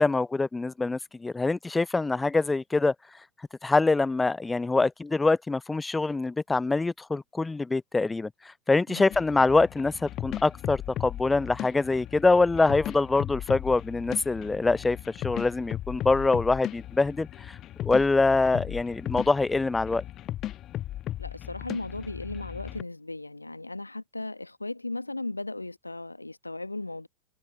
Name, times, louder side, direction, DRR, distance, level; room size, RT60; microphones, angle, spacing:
voice 1, 0.0-2.9 3.6-8.3 8.7-15.0 15.2-20.0, left 3 dB, 10° left, 0.5 m, -24 dB
sound 1, 9.1-22.8, left 13 dB, 30° left, 1.2 m, -37 dB
voice 2, 21.2-27.1, left 2 dB, 85° left, 1.3 m, -36 dB
figure-of-eight pair, 90°, 0 cm